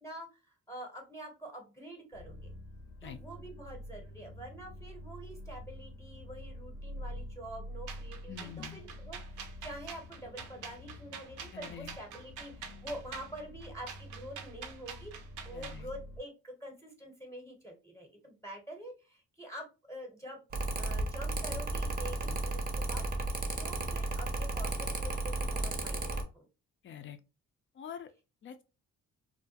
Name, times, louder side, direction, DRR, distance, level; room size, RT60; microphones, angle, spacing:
voice 1, 0.0-2.5 3.0-20.4 20.8-23.0 23.6-26.5, right 1 dB, 10° left, 0.8 m, -46 dB
sound 1, 2.1-16.2, left 1 dB, 75° left, 0.7 m, -47 dB
sound 2, 7.9-15.8, right 7 dB, 80° right, 0.6 m, -46 dB
voice 2, 8.3-8.9 11.5-12.0 15.5-15.9 22.2-22.4 26.8-27.2 27.7-28.1 28.4-28.6, left 8 dB, 40° left, 0.4 m, -45 dB
Mechanical fan, 20.5-26.2, right 2 dB, 30° right, 0.6 m, -33 dB
2.3 x 2.1 x 2.7 m
cardioid pair, 90°, 30 cm